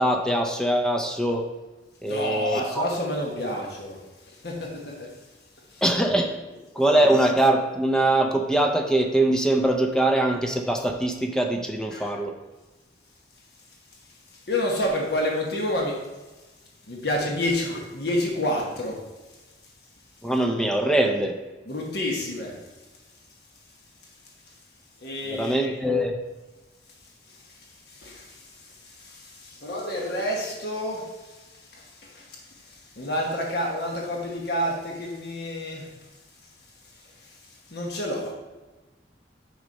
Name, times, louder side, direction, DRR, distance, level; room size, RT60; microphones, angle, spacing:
voice 1, 0.0-1.4 2.0-2.8 5.8-6.3 6.8-12.3 20.2-21.4 25.3-26.1, right 1 dB, 5° left, 3 dB, 0.5 m, -22 dB
voice 2, 2.1-4.0 4.3-5.1 5.7-5.8 11.9-12.2 14.5-16.0 16.9-19.0 21.7-22.6 25.0-25.7 27.9-31.4 31.7-35.9 37.7-38.3, left 1 dB, 60° left, -1 dB, 1.2 m, -29 dB
6.4 x 5.1 x 4.1 m, 1.2 s
head